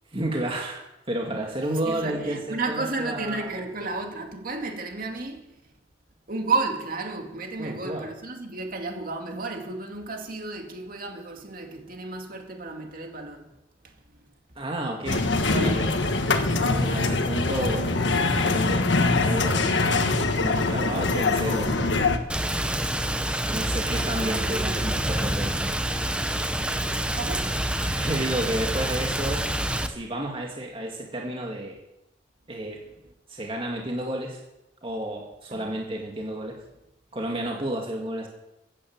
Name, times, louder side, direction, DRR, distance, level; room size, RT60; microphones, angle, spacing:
voice 1, 0.1-0.8 1.1-3.5 7.6-8.1 14.6-16.1 16.5-18.0 18.4-18.8 19.2-22.1 23.5-25.6 27.9-29.5 29.9-31.8 32.5-32.8 33.3-34.4 34.8-36.6 37.1-38.3, right 1 dB, 30° right, 2.0 m, -31 dB
voice 2, 1.8-5.7 6.3-13.6 13.8-14.2 23.9-24.9 27.0-28.0 32.7-32.8 33.0-33.1 35.5-35.8, right 3 dB, 50° right, 2.4 m, -33 dB
sound 1, 15.1-22.2, left 3 dB, 75° left, 1.4 m, -23 dB
Rain, 22.3-29.9, right 1 dB, 5° right, 1.0 m, -27 dB
16.0 x 9.3 x 7.4 m
head